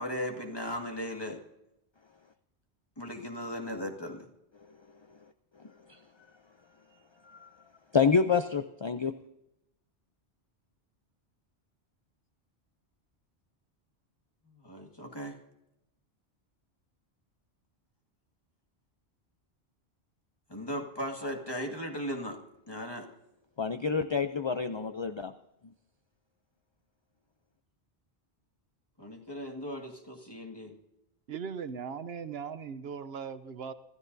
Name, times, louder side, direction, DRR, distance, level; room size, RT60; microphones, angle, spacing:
voice 1, 0.0-1.4 3.0-4.3 14.6-15.4 20.5-22.4 22.7-23.1 29.0-30.7, equal, 20° left, 2 dB, 1.9 m, -37 dB
voice 2, 5.6-6.0 7.2-7.5 7.9-9.1 23.6-25.3, left 5 dB, 40° left, 9 dB, 0.4 m, -28 dB
voice 3, 31.3-33.7, right 6 dB, 65° right, 11 dB, 1.0 m, -38 dB
26.0 x 13.5 x 2.7 m, 0.88 s
omnidirectional pair, 1.1 m